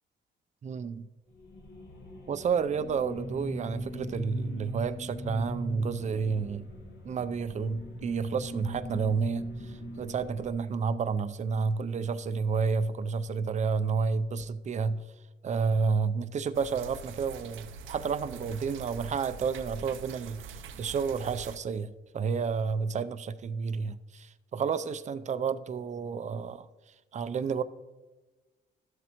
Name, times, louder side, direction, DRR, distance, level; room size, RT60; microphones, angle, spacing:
voice 1, 0.6-1.0 2.3-6.7 7.0-15.0 15.4-26.7 27.1-27.6, right 5 dB, 35° right, 12 dB, 0.5 m, -30 dB
sound 1, 1.3-10.5, equal, 70° left, 2.1 m, -40 dB
sound 2, 16.5-21.6, right 5 dB, 80° right, 0.7 m, -44 dB
12.5 x 7.7 x 3.0 m, 1.2 s
cardioid pair, 90°, 20 cm